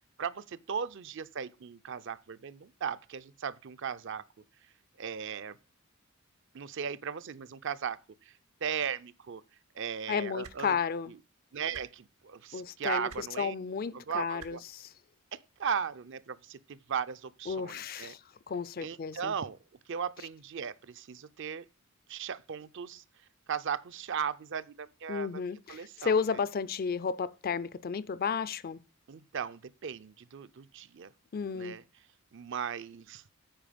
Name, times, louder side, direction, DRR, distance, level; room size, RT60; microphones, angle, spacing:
voice 1, 0.2-4.2 5.0-5.6 6.5-8.3 8.6-9.4 9.7-10.8 11.1-11.2 11.5-13.5 13.9-14.6 15.3-18.1 18.8-19.6 19.9-21.6 22.1-23.0 23.5-25.4 25.7-26.4 29.1-31.1 31.5-31.8 32.3-33.2, right 7 dB, 55° right, 0.5 m, -37 dB
voice 2, 10.1-11.1 12.5-14.9 17.5-18.2 18.5-19.3 25.1-28.8 31.3-31.8, left 6 dB, 45° left, 0.4 m, -33 dB
sound 1, 10.4-10.6 11.7-11.8 13.1-13.2 14.4-14.5 15.7-15.8, right 6 dB, 90° right, 1.1 m, -47 dB
8.9 x 4.9 x 5.0 m
head